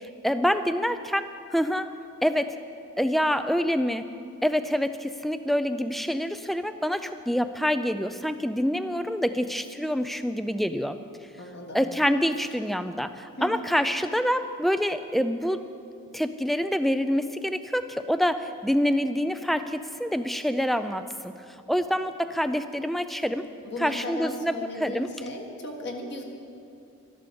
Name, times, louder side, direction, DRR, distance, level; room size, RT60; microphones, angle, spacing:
voice 1, 0.2-1.9 2.2-2.6 3.0-4.0 4.4-11.0 11.7-15.6 16.1-21.3 21.7-23.5 23.8-24.5 24.8-25.1, equal, ahead, 10 dB, 0.3 m, -26 dB
voice 2, 11.4-11.8 13.4-13.6 23.6-26.2, left 1 dB, 50° left, 1 dB, 1.5 m, -36 dB
13.0 x 11.5 x 6.9 m, 2.6 s
head